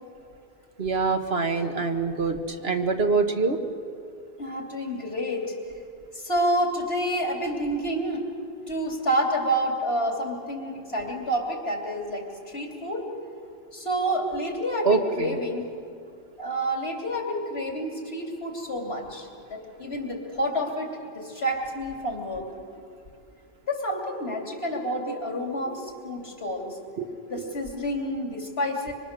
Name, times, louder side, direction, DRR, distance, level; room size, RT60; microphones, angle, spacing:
voice 1, 0.8-3.6 14.8-15.4 27.0-27.1 27.3-27.4, right 4 dB, 75° right, 5 dB, 1.8 m, -25 dB
voice 2, 4.4-5.5 6.1-8.3 8.7-12.3 12.5-13.1 13.7-15.7 16.4-22.5 23.7-26.7 27.3-28.9, equal, 80° left, 1 dB, 3.5 m, -29 dB
25.0 x 25.0 x 6.8 m, 2.4 s
omnidirectional pair, 1.0 m